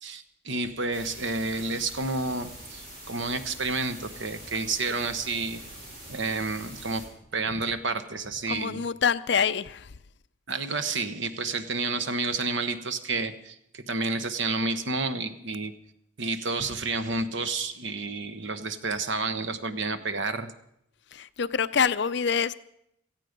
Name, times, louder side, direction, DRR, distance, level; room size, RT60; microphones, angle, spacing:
voice 1, 0.0-5.6 6.1-7.0 7.3-8.8 10.5-15.7 16.2-20.5, right 3 dB, 65° right, 1.1 m, -30 dB
sound 1, 0.9-7.0, right 1 dB, 45° right, 6.3 m, -44 dB
voice 2, 8.5-9.9 21.1-22.5, left 6 dB, 60° left, 0.5 m, -26 dB
18.0 x 14.0 x 5.2 m
head